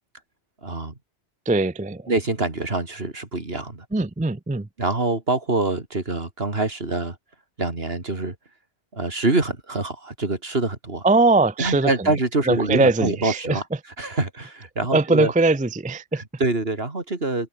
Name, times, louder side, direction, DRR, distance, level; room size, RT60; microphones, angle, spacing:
voice 1, 0.6-1.0 2.1-3.9 4.8-7.2 7.6-8.4 8.9-11.0 11.6-13.6 14.0-15.3 16.1-17.5, right 2 dB, 55° right, 3.5 m, -25 dB
voice 2, 1.5-2.1 3.9-4.7 11.0-11.9 12.5-13.6 14.9-16.2, right 3 dB, 10° right, 0.3 m, -20 dB
open air
omnidirectional pair, 1.2 m